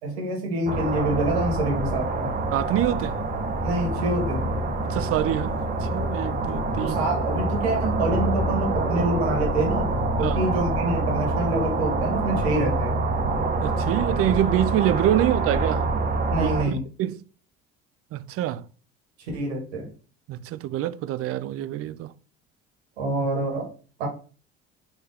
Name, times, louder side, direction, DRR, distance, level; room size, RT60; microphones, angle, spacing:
voice 1, 0.0-2.3 3.6-4.5 6.8-13.0 16.3-16.8 19.3-19.9 23.0-23.7 24.0-24.1, right 2 dB, 85° right, 1.4 m, -26 dB
sound 1, 0.7-16.6, right 2 dB, 25° right, 0.9 m, -26 dB
voice 2, 2.5-3.2 4.8-7.0 10.2-10.4 13.6-15.9 16.4-16.5 17.0-17.2 18.1-18.6 20.3-22.1, right 12 dB, 50° right, 0.4 m, -25 dB
4.6 x 2.7 x 3.5 m
hypercardioid pair, 60°, 31 cm